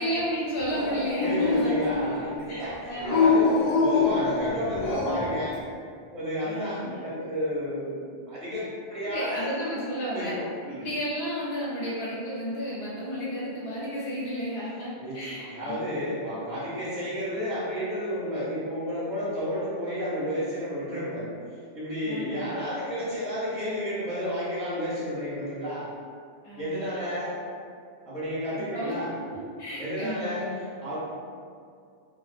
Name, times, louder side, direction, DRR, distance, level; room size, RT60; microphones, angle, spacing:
voice 1, 0.0-1.7 2.5-2.6 2.9-3.2 6.4-7.1 9.1-10.3 10.8-14.9 15.1-15.8 22.1-22.5 26.4-26.9 28.7-28.9 29.3-30.6, equal, 75° left, -7 dB, 1.0 m, -32 dB
Dog, 0.7-2.2 3.0-5.4, left 4 dB, 50° left, 0.6 m, -24 dB
voice 2, 1.2-5.6 6.1-9.5 10.1-10.9 15.0-21.3 21.7-25.9 26.6-27.4 28.1-29.1 29.8-31.0, equal, 10° left, -11 dB, 0.5 m, -31 dB
2.4 x 2.3 x 2.5 m, 2.2 s
omnidirectional pair, 1.1 m